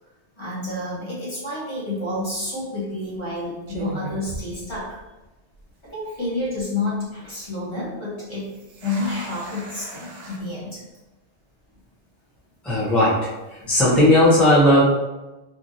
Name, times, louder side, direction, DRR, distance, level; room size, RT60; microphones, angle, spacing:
voice 1, 0.4-5.0 5.8-8.5 8.8-10.8, left 2 dB, 25° left, -8 dB, 1.1 m, -29 dB
sound 1, 2.1-2.4 3.2-3.3 3.7-5.2 5.5-5.6 6.2-6.6 8.4-10.4, right 2 dB, 85° right, 0.9 m, -37 dB
voice 2, 12.6-13.3 13.6-14.8, left 1 dB, ahead, -9 dB, 0.4 m, -16 dB
2.9 x 2.6 x 2.6 m, 1.1 s
omnidirectional pair, 1.1 m